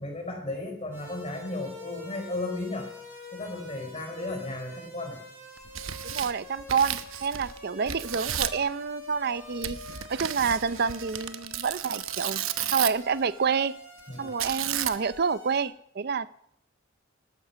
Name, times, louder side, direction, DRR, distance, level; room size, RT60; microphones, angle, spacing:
voice 1, 0.0-2.9 3.3-5.2 14.1-14.3, left 2 dB, 30° left, 4.1 m, -34 dB
sound 1, 0.9-15.6, left 2 dB, 10° right, 7.6 m, -47 dB
Tearing, 5.6-7.6 7.9-8.6 9.6-13.1 14.4-15.2, right 11 dB, 80° right, 0.9 m, -33 dB
voice 2, 6.0-9.8 10.1-12.4 12.7-13.7 14.2-16.3, right 6 dB, 50° right, 0.5 m, -28 dB
19.0 x 13.5 x 5.7 m
head